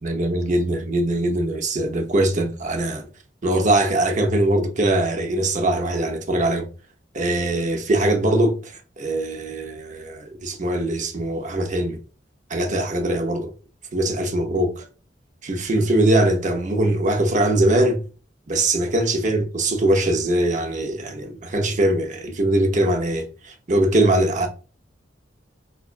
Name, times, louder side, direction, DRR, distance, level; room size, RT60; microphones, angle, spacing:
voice 1, 0.0-3.1 3.4-6.7 7.1-12.0 12.5-13.5 13.9-14.9 15.4-18.0 18.5-24.5, right 1 dB, 45° right, 0.7 m, -21 dB
4.8 x 2.2 x 2.5 m
head